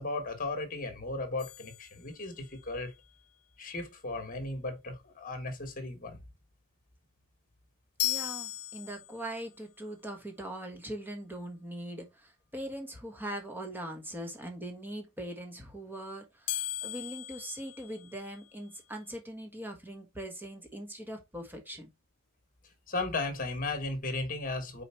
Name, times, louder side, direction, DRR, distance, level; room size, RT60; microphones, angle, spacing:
voice 1, 0.0-2.9 3.6-6.2 22.9-24.8, left 2 dB, 40° left, 1.5 m, -35 dB
sound 1, 1.4-2.7 8.0-9.5 16.5-18.6, left 15 dB, 90° left, 0.6 m, -37 dB
voice 2, 8.0-21.9, right 1 dB, 10° right, 1.4 m, -41 dB
4.9 x 4.3 x 4.5 m
head